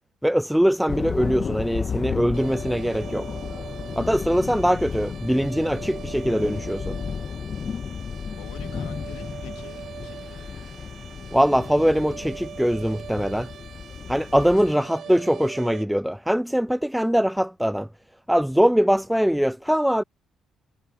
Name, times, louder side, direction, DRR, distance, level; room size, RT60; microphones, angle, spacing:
voice 1, 0.2-3.3 4.0-7.0 11.3-13.5 14.1-17.9 18.3-20.0, equal, 5° right, 0.4 m, -22 dB
sound 1, 0.9-14.7, left 6 dB, 45° left, 1.6 m, -33 dB
sound 2, 2.3-15.9, right 9 dB, 60° right, 7.6 m, -42 dB
voice 2, 8.4-10.5 14.7-14.8 15.0-15.6, left 18 dB, 85° left, 2.0 m, -47 dB
hypercardioid pair, 60°, 0 cm